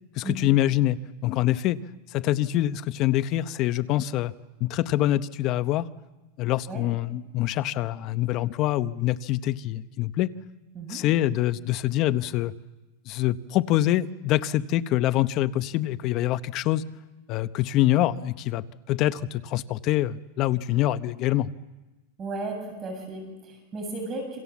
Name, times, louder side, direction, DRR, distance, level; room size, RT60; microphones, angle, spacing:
voice 1, 0.2-1.8 2.1-4.3 4.6-5.9 6.4-10.3 10.9-12.5 13.1-16.8 17.3-21.5, left 14 dB, 40° left, 14 dB, 0.9 m, -25 dB
voice 2, 22.2-24.4, right 2 dB, 25° right, 2 dB, 6.9 m, -34 dB
28.5 x 26.0 x 7.4 m, 1.1 s
supercardioid pair, 145°, 0 cm